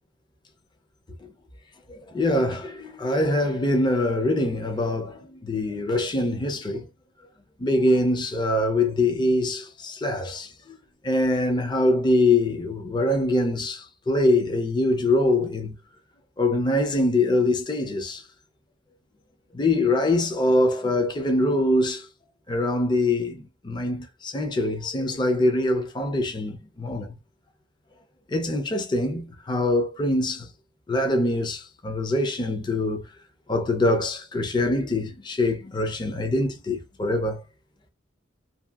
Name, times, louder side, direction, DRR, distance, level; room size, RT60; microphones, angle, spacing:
voice 1, 1.9-6.8 7.6-10.5 11.0-15.7 16.4-18.2 19.5-22.1 22.5-27.1 28.3-30.5 30.9-33.0 33.5-37.4, left 1 dB, 20° left, 0.5 m, -24 dB
2.7 x 2.5 x 2.3 m
head